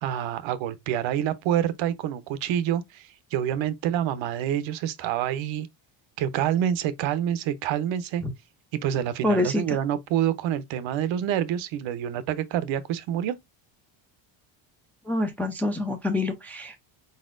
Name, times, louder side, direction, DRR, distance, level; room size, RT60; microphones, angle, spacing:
voice 1, 0.0-5.7 6.2-8.2 8.7-13.3, right 10 dB, 70° right, 0.8 m, -27 dB
voice 2, 9.2-9.8 15.1-16.8, left 2 dB, 5° left, 0.3 m, -26 dB
4.5 x 4.1 x 2.4 m
cardioid pair, 160°, 49 cm